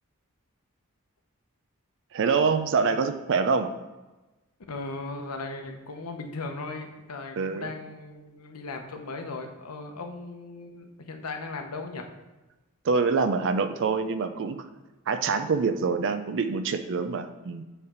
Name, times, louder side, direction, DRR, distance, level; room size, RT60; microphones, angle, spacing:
voice 1, 2.1-3.7 7.4-7.7 12.8-14.7 15.1-17.6, right 5 dB, 55° right, 9 dB, 0.4 m, -25 dB
voice 2, 4.7-12.1, left 3 dB, 85° left, 4 dB, 0.9 m, -37 dB
7.0 x 3.4 x 6.0 m, 1.1 s
head